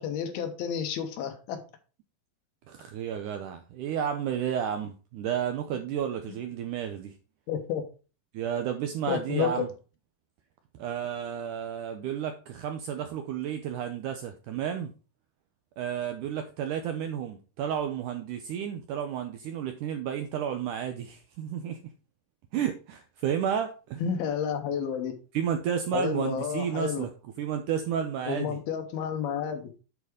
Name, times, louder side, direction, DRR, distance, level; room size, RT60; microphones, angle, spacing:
voice 1, 0.0-1.6 7.5-7.8 9.1-9.7 24.0-25.2 25.9-27.1 28.3-29.6, left 7 dB, 80° left, 3.1 m, -30 dB
voice 2, 2.7-7.1 8.3-9.7 10.8-14.9 15.8-21.8 22.5-24.0 25.3-27.1 27.4-28.6, right 8 dB, 80° right, 1.8 m, -32 dB
8.5 x 4.8 x 4.9 m
omnidirectional pair, 4.4 m